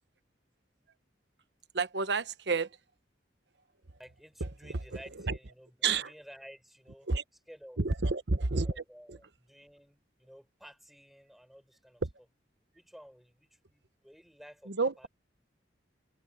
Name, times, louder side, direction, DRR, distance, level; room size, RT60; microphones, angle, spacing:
voice 1, 1.7-2.7 4.4-4.8 5.2-5.4 5.8-6.1 7.1-7.2 7.8-8.7 9.1-9.2 12.0-12.1 14.7-15.1, right 4 dB, 70° right, 1.1 m, -30 dB
voice 2, 4.0-7.1 7.5-7.8 8.5-12.0 12.7-15.1, equal, ahead, 6.3 m, -53 dB
head